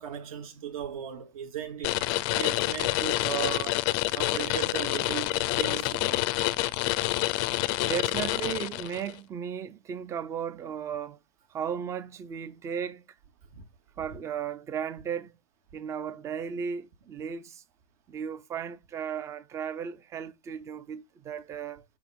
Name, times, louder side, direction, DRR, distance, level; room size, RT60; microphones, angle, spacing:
voice 1, 0.0-2.0 2.4-6.3 13.5-13.7, right 9 dB, 65° right, 2.3 m, -37 dB
sound 1, 1.8-9.1, left 18 dB, 35° left, 0.5 m, -28 dB
voice 2, 7.8-11.2 11.5-13.1 14.0-15.3 15.7-17.6 18.1-21.8, right 7 dB, 15° right, 0.5 m, -35 dB
5.7 x 4.8 x 3.6 m
supercardioid pair, 150°, 19 cm